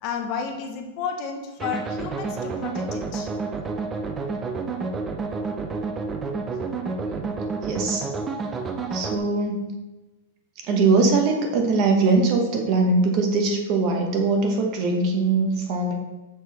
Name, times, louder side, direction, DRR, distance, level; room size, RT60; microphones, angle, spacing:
voice 1, 0.0-3.3, left 6 dB, 40° left, 4 dB, 0.8 m, -32 dB
sound 1, 1.6-9.2, right 4 dB, 15° right, 0.5 m, -29 dB
voice 2, 7.1-8.0 8.9-9.7 10.6-15.9, right 3 dB, 40° right, 2 dB, 1.1 m, -22 dB
6.2 x 4.6 x 4.1 m, 1.1 s
supercardioid pair, 150°, 0 cm